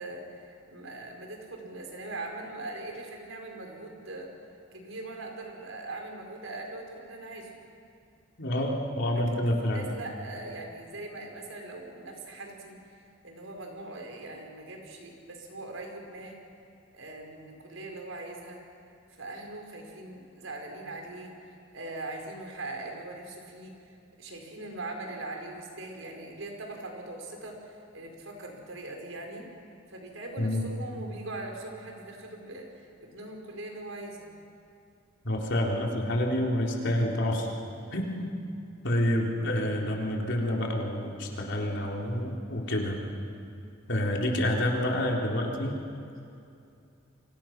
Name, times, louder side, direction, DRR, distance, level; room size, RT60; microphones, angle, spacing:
voice 1, 0.0-4.3 4.7-7.6 9.1-9.4 9.6-16.4 16.9-18.6 19.2-29.5 29.9-34.3, right 2 dB, 90° right, 2 dB, 4.7 m, -41 dB
voice 2, 8.4-9.9 30.4-30.7 35.2-37.5 37.9-38.3 38.8-43.0 43.9-45.8, left 1 dB, 65° left, -1 dB, 3.8 m, -28 dB
30.0 x 24.0 x 6.1 m, 2.6 s
head